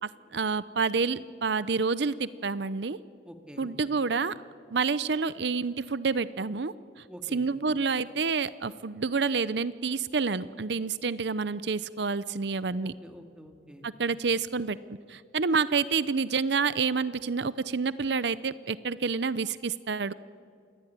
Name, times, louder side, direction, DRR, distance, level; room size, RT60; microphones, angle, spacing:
voice 1, 0.0-3.0 3.6-4.3 4.7-6.7 7.3-12.9 13.8-14.8 15.1-20.1, right 4 dB, 65° right, 16 dB, 0.7 m, -28 dB
voice 2, 3.2-3.7 7.1-7.4 12.8-13.9, equal, 5° right, 5 dB, 2.1 m, -47 dB
27.5 x 19.5 x 9.9 m, 2.4 s
head